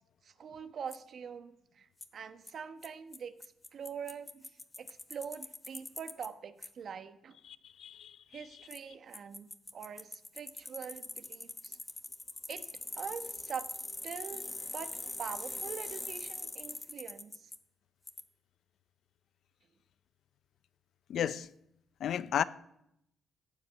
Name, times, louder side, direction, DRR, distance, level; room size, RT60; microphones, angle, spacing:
voice 1, 0.2-4.5 4.8-7.4 8.3-11.8 12.5-12.7 12.9-13.7 14.0-14.5 14.7-17.5, right 7 dB, 55° right, 1.1 m, -44 dB
Bicycle, 0.9-1.0 2.0-2.1 2.5-2.6 2.8-2.9 3.1-3.2 3.4-6.3 6.6-6.7 8.7-8.8 9.1-17.6 18.1-18.2, left 2 dB, 20° left, 1.1 m, -42 dB
voice 2, 7.8-8.1 21.1-21.5 22.0-22.4, left 9 dB, 70° left, 0.5 m, -32 dB
14.0 x 9.6 x 7.5 m
cardioid pair, 90°, 0 cm